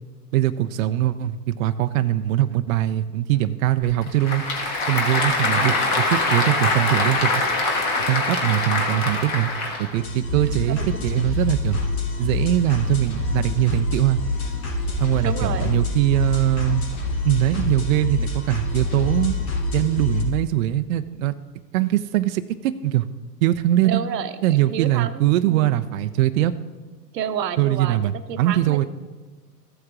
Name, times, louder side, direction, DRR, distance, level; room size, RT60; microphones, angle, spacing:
voice 1, 0.3-4.4 4.9-7.4 8.1-9.5 9.8-11.8 12.2-14.2 15.0-16.8 17.2-19.4 19.7-21.3 21.7-23.1 23.4-24.0 24.4-26.5 27.6-28.9, right 13 dB, 55° right, 9 dB, 0.5 m, -22 dB
Applause / Crowd, 3.8-10.0, left 2 dB, 35° left, 1.6 m, -23 dB
voice 2, 5.4-5.9 10.5-11.3 15.2-15.8 23.8-25.7 27.1-28.0 28.3-28.9, right 8 dB, 75° right, 11 dB, 0.9 m, -31 dB
sound 1, 9.9-20.2, left 2 dB, 55° left, 3.3 m, -26 dB
14.5 x 7.8 x 2.5 m, 1.3 s
hypercardioid pair, 115°, 50 cm